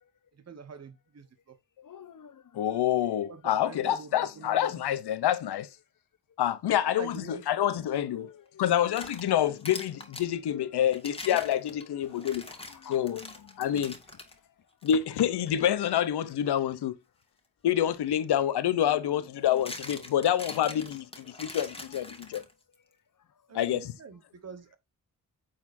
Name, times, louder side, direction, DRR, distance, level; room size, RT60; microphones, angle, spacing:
voice 1, 0.5-1.3 3.3-4.7 6.8-7.4 23.5-24.8, right 6 dB, 40° right, 1.2 m, -44 dB
voice 2, 1.8-2.7 8.2-8.7 12.0-13.8 18.9-19.2 20.8-20.9 22.1-22.4, left 9 dB, 55° left, 1.0 m, -51 dB
voice 3, 2.5-5.7 6.4-8.3 8.6-12.4 12.9-13.2 13.6-14.0 14.8-16.9 17.6-22.4 23.5-23.9, left 10 dB, 85° left, 0.9 m, -27 dB
sound 1, 8.7-10.3 10.9-14.3 14.8-15.0 15.6-15.8 18.0-18.1 19.2-22.7, left 2 dB, 15° left, 2.0 m, -44 dB
8.5 x 4.3 x 2.7 m
cardioid pair, 60°, 39 cm